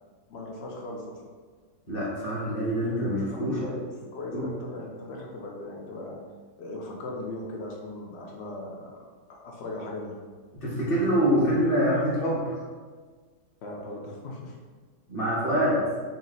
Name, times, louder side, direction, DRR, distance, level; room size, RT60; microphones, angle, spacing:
voice 1, 0.3-1.2 3.3-6.2 6.6-9.0 9.3-10.2 13.6-14.6, left 2 dB, 90° left, -1 dB, 0.5 m, -38 dB
voice 2, 1.9-3.6 4.3-4.4 10.5-12.6 15.1-15.8, equal, 35° left, -7 dB, 1.2 m, -25 dB
3.7 x 2.4 x 4.0 m, 1.5 s
omnidirectional pair, 1.8 m